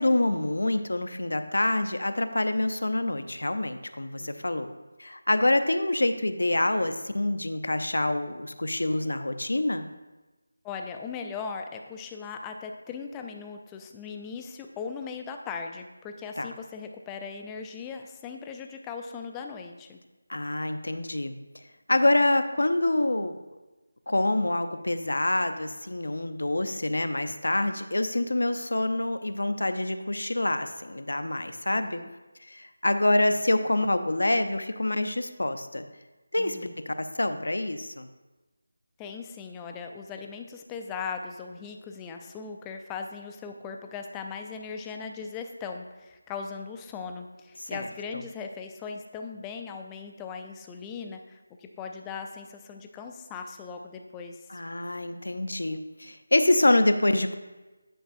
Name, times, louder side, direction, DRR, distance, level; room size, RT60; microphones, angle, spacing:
voice 1, 0.0-4.7 5.0-9.9 16.4-16.5 20.3-21.4 21.9-23.4 24.1-32.0 32.5-35.8 36.3-36.6 36.9-38.1 47.6-47.9 54.5-57.4, left 1 dB, 80° left, 9 dB, 0.6 m, -26 dB
voice 2, 10.6-20.0 31.7-32.1 36.4-36.7 39.0-54.6, left 5 dB, 10° left, 4 dB, 0.4 m, -39 dB
10.0 x 5.2 x 2.6 m, 1.2 s
figure-of-eight pair, 165°, 0 cm